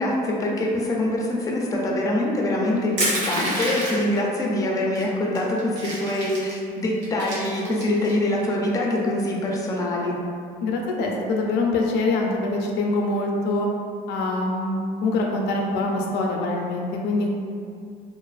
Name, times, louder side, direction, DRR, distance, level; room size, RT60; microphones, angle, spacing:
voice 1, 0.0-10.2, left 1 dB, 20° left, -2 dB, 0.4 m, -24 dB
Crushing, 3.0-4.2 5.0-5.1 5.4-6.6 7.0-8.1, right 1 dB, 85° right, 0.9 m, -27 dB
voice 2, 10.6-13.7 14.1-17.3, left 2 dB, 85° left, 0 dB, 0.4 m, -24 dB
2.5 x 2.3 x 2.4 m, 2.3 s
cardioid pair, 110°, 17 cm